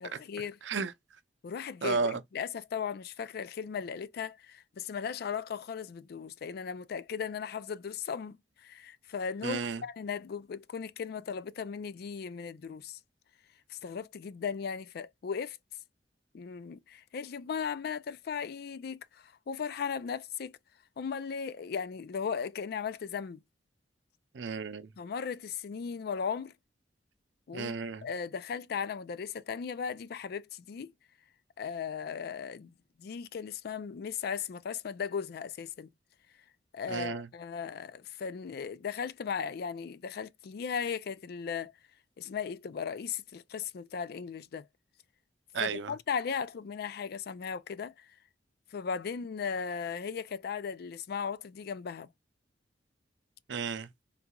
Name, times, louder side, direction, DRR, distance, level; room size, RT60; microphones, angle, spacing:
voice 1, 0.0-0.6 1.4-13.0 13.7-15.6 16.3-20.5 21.0-23.4 25.0-26.5 27.5-27.7 28.0-30.9 31.6-32.7 33.0-35.9 36.7-41.7 42.2-44.7 45.6-48.1 48.7-52.1, left 6 dB, 60° left, 0.4 m, -37 dB
voice 2, 1.8-2.2 9.4-9.8 24.3-24.9 27.5-28.0 36.9-37.3 45.5-45.9 53.5-53.9, right 4 dB, 90° right, 0.5 m, -33 dB
3.8 x 2.3 x 2.9 m
head